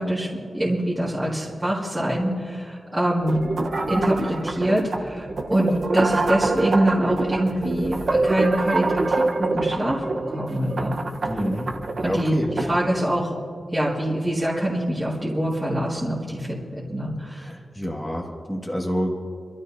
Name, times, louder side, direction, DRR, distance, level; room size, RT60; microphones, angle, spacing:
voice 1, 0.0-3.5 3.9-11.0 12.0-13.3 13.7-17.6, right 1 dB, 10° right, -8 dB, 1.9 m, -24 dB
sound 1, 3.3-12.9, right 3 dB, 50° right, 0.9 m, -26 dB
voice 2, 11.3-11.7 12.0-12.6 17.4-19.2, equal, 5° left, -3 dB, 1.8 m, -28 dB
27.0 x 13.0 x 2.7 m, 2.2 s
wide cardioid pair, 180°, 0 cm